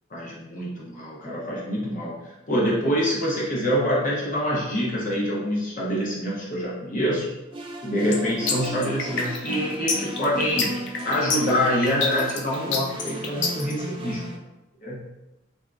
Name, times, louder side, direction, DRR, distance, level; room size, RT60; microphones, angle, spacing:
voice 1, 0.1-2.2 2.5-7.3 7.8-10.8 11.0-14.2 14.8-15.0, equal, 45° left, -5 dB, 0.9 m, -25 dB
sound 1, 7.5-14.4, right 1 dB, 25° right, 0.4 m, -35 dB
sound 2, 8.1-13.7, left 4 dB, 60° left, 0.4 m, -27 dB
3.4 x 2.7 x 2.4 m, 0.97 s
head